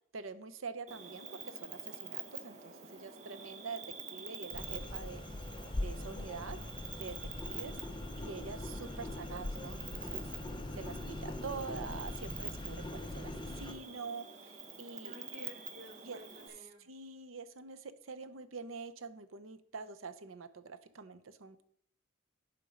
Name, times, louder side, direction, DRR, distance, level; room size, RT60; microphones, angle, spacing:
voice 1, 0.1-3.8 4.1-6.6 7.0-7.2 7.4-7.8 8.2-10.3 10.7-15.2 16.0-16.2 16.8-21.6, right 5 dB, 85° right, 11 dB, 0.7 m, -45 dB
Cricket, 0.9-16.5, right 6 dB, 35° right, 1.2 m, -47 dB
sound 1, 4.5-13.7, left 1 dB, 25° left, 0.7 m, -41 dB
voice 2, 8.8-9.3 15.0-16.8, left 1 dB, 60° right, -4 dB, 3.1 m, -53 dB
11.0 x 4.5 x 5.1 m, 0.69 s
head